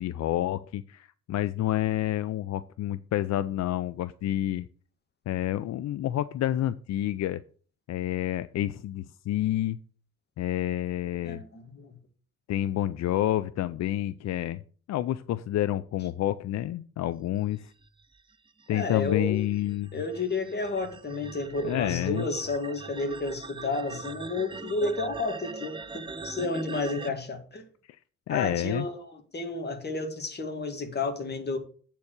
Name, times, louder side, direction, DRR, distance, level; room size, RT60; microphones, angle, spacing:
voice 1, 0.0-4.7 5.3-7.4 7.9-9.8 10.4-11.4 12.5-14.6 14.9-17.7 18.7-19.9 21.6-22.3 27.1-27.2 27.9-28.0 28.3-28.9, left 13 dB, 60° left, 0.5 m, -29 dB
voice 2, 11.2-12.0 18.7-19.5 19.9-27.7 28.3-31.6, left 3 dB, 35° left, 1.9 m, -31 dB
sound 1, 17.8-27.1, right 4 dB, 15° right, 0.5 m, -42 dB
8.3 x 4.5 x 6.5 m
cardioid pair, 90°, 30 cm